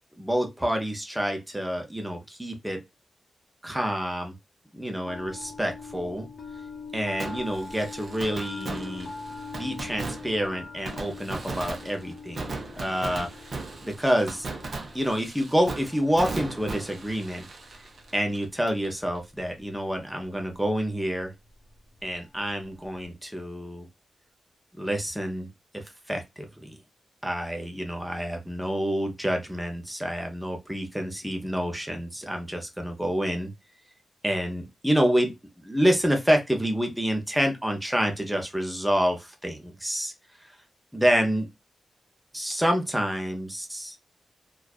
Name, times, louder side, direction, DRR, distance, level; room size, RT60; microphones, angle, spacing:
voice 1, 0.2-2.8 3.6-4.3 4.7-6.3 6.9-9.1 9.6-12.5 12.8-13.3 13.8-14.5 14.9-17.5 18.1-21.3 22.0-23.9 24.8-26.8 27.2-33.5 34.2-40.1 40.9-41.5 42.3-43.9, equal, 5° right, 0.6 m, -28 dB
sound 1, 5.0-23.0, left 4 dB, 55° left, 0.6 m, -44 dB
Fireworks, 7.2-18.9 19.1-19.2 25.9-26.0, right 3 dB, 50° right, 0.6 m, -38 dB
2.5 x 2.3 x 2.2 m
wide cardioid pair, 140°, 0 cm